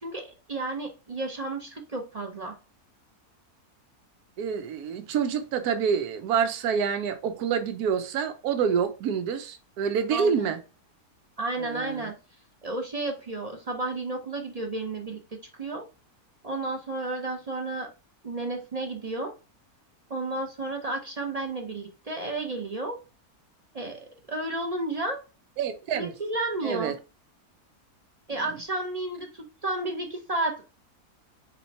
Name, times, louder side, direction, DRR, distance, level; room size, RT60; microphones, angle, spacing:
voice 1, 0.0-2.6 10.1-10.5 11.4-12.1 12.6-15.2 15.6-15.8 16.4-17.9 18.2-19.3 20.1-23.0 23.7-25.2 25.9-26.9 28.3-30.6, right 2 dB, 40° right, 0.6 m, -32 dB
voice 2, 4.4-10.6 11.6-12.1 25.6-26.1 26.6-27.0, right 7 dB, 85° right, 1.2 m, -27 dB
4.2 x 3.0 x 4.1 m
omnidirectional pair, 1.6 m